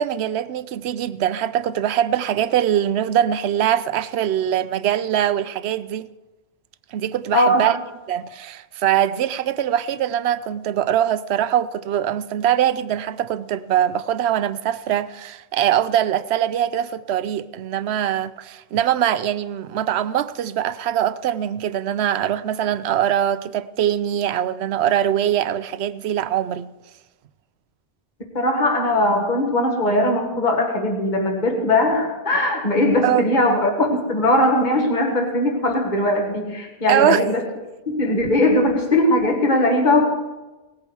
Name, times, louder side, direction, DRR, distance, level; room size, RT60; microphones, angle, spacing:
voice 1, 0.0-6.1 6.9-7.7 8.1-26.7 33.0-33.3 36.9-37.2, right 10 dB, 90° right, 0.9 m, -22 dB
voice 2, 7.3-7.6 28.3-37.4 37.9-40.0, left 1 dB, 45° left, 1.9 m, -19 dB
18.5 x 8.6 x 4.7 m
omnidirectional pair, 1.0 m